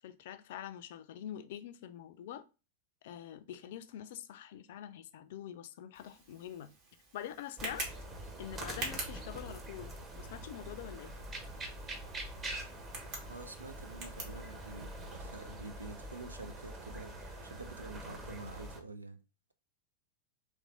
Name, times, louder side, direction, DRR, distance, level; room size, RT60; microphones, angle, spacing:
voice 1, 0.0-2.4 3.0-6.7 7.1-7.9 8.4-11.1, left 10 dB, 55° left, 0.4 m, -45 dB
Tick, 5.9-15.1, right 2 dB, 45° right, 1.5 m, -47 dB
sound 1, 7.6-18.8, right 1 dB, 25° right, 1.0 m, -45 dB
voice 2, 13.3-19.2, right 3 dB, 80° right, 0.4 m, -48 dB
3.2 x 3.1 x 3.8 m
figure-of-eight pair, 90°, 0 cm